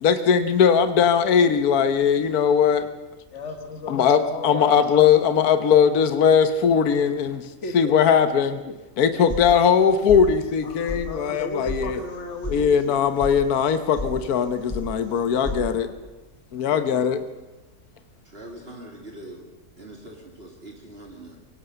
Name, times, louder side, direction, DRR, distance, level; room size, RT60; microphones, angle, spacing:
voice 1, 0.0-2.9 3.9-7.5 7.7-8.6 9.0-12.0 12.5-15.9 16.5-17.2, left 7 dB, 75° left, 10 dB, 1.5 m, -19 dB
voice 2, 3.3-4.9 7.6-8.2 8.6-8.8 10.6-12.7 15.4-15.9 16.7-16.8, left 3 dB, 50° left, 4 dB, 1.7 m, -34 dB
sound 1, 9.3-9.8 10.1-10.6 10.9-11.0 11.3-11.8 12.1-12.6 12.8-13.3 13.6-14.1 14.4-14.9 15.1-15.6, left 2 dB, 20° left, 5.5 m, -32 dB
voice 3, 18.2-19.5 19.8-21.4, right 1 dB, 40° right, 1 dB, 2.7 m, -42 dB
23.5 x 17.5 x 6.8 m, 1.1 s
omnidirectional pair, 1.6 m